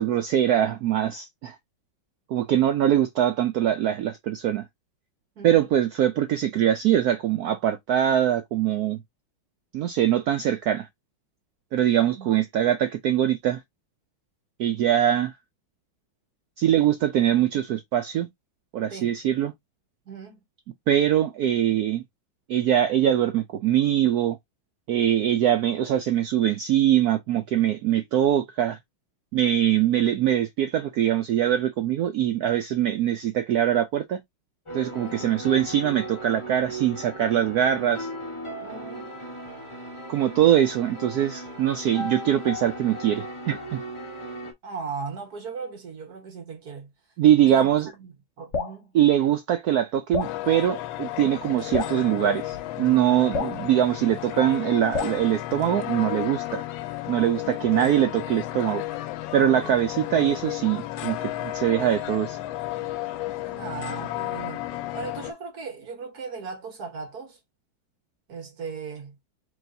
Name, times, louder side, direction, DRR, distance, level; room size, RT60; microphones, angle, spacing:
voice 1, 0.0-1.6 2.3-4.6 5.4-9.0 9.7-10.9 11.7-13.6 14.6-15.4 16.6-18.3 18.7-19.5 20.9-22.0 22.5-24.4 24.9-28.8 29.3-34.2 34.7-38.1 40.1-43.8 47.2-47.9 48.9-56.6 57.1-58.8 59.3-62.4, right 11 dB, 80° right, 0.8 m, -23 dB
voice 2, 5.4-5.7 12.1-12.4 18.9-19.1 20.1-20.4 35.0-35.4 38.6-39.1 44.6-46.9 47.4-47.7 48.0-48.1 48.4-48.9 57.3-57.7 59.5-59.8 63.5-67.4 68.3-69.2, right 5 dB, 55° right, 1.8 m, -38 dB
sound 1, 34.7-44.5, right 1 dB, 20° left, 0.9 m, -37 dB
Drip, 48.5-48.8 50.1-50.4 51.7-52.0 53.3-53.6 54.9-55.2, left 4 dB, 50° left, 0.9 m, -28 dB
sound 2, 50.2-65.3, left 15 dB, 80° left, 1.3 m, -33 dB
4.7 x 3.1 x 2.7 m
omnidirectional pair, 2.2 m